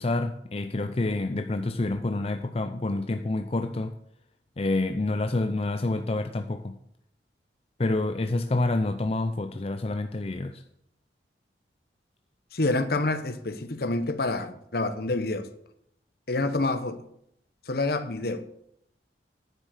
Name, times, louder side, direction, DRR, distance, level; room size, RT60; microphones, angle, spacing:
voice 1, 0.0-3.9 4.6-6.8 7.8-10.6, left 2 dB, 35° left, 0.5 m, -28 dB
voice 2, 12.5-15.5 16.3-17.1 17.7-18.5, left 2 dB, 55° left, 0.9 m, -27 dB
9.9 x 7.7 x 6.5 m
head